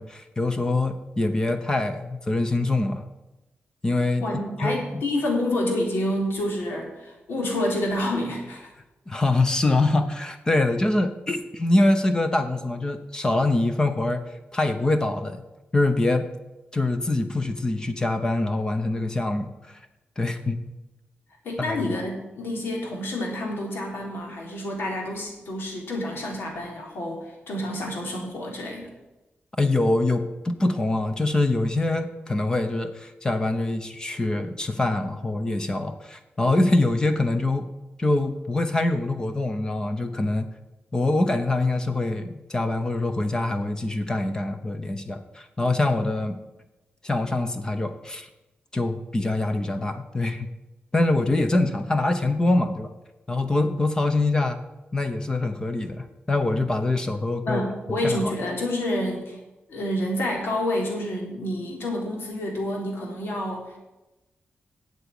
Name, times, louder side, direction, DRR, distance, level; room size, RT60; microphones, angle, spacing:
voice 1, 0.0-3.0 3.8-4.2 4.6-5.0 9.1-14.2 14.5-15.4 15.7-16.3 16.7-19.8 20.2-20.6 21.7-21.8 29.6-37.7 38.0-40.5 40.9-46.4 47.0-48.3 48.7-50.5 50.9-52.9 53.3-54.6 54.9-57.6 57.9-58.3, left 2 dB, 20° left, 8 dB, 0.8 m, -24 dB
voice 2, 4.2-8.7 21.4-28.9 57.5-59.4 59.7-63.8, left 1 dB, 80° left, 0 dB, 3.7 m, -28 dB
8.7 x 8.2 x 8.8 m, 1.0 s
wide cardioid pair, 175°, 4 cm